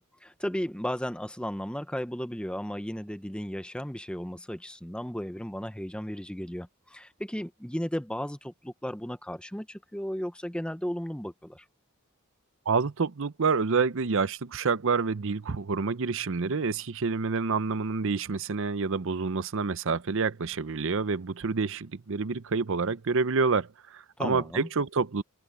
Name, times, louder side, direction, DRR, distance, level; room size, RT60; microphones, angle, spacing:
voice 1, 0.0-11.6 24.2-24.7, equal, 5° left, 0.9 m, -35 dB
voice 2, 12.7-25.2, right 4 dB, 65° right, 0.7 m, -28 dB
head